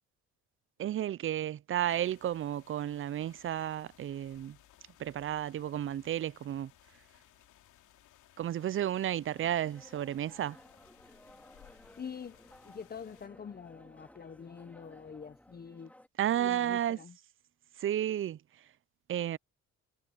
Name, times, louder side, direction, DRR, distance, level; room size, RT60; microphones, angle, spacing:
voice 1, 0.8-4.6 5.0-6.7 8.4-10.6 16.2-17.0 17.8-18.7 19.1-19.4, right 11 dB, 45° right, 0.5 m, -32 dB
sound 1, 1.9-13.3, left 13 dB, 85° left, 2.8 m, -62 dB
sound 2, 9.3-16.1, left 1 dB, 5° left, 2.3 m, -58 dB
voice 2, 11.9-12.4 12.6-15.9 16.3-17.1, left 6 dB, 30° left, 0.9 m, -45 dB
cardioid pair, 90°, 30 cm